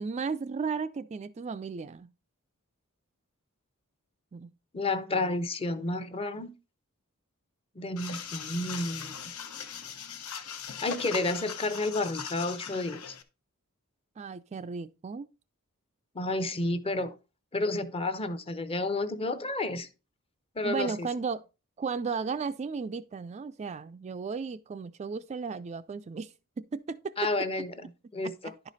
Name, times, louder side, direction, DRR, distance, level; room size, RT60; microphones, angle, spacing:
voice 1, 0.0-2.1 4.3-4.5 14.2-15.3 20.6-21.4 21.8-27.3 28.4-28.5, right 5 dB, 30° right, 0.3 m, -35 dB
voice 2, 4.7-6.5 7.8-9.1 10.8-13.2 16.1-17.1 17.5-19.9 20.6-21.1 27.2-28.5, left 2 dB, 25° left, 0.7 m, -31 dB
sound 1, 8.0-13.2, left 7 dB, 85° left, 1.0 m, -40 dB
11.0 x 4.9 x 4.0 m
head